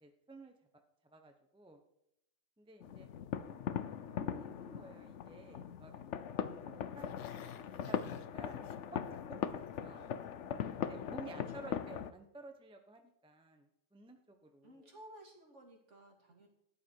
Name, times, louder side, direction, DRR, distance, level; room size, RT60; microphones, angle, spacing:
voice 1, 0.0-0.5 1.1-1.8 2.6-3.1 4.0-5.9 6.4-8.6 8.9-10.1 10.8-14.9, right 2 dB, 5° right, 5 dB, 0.9 m, -54 dB
sound 1, 2.8-12.1, left 8 dB, 60° left, 0.9 m, -40 dB
Growling, 6.9-9.2 9.5-9.9 10.2-10.3, left 11 dB, 85° left, 1.3 m, -54 dB
voice 2, 11.3-11.8 14.6-16.5, right 1 dB, 50° right, 1 dB, 2.8 m, -56 dB
13.5 x 10.5 x 4.7 m, 0.81 s
omnidirectional pair, 1.6 m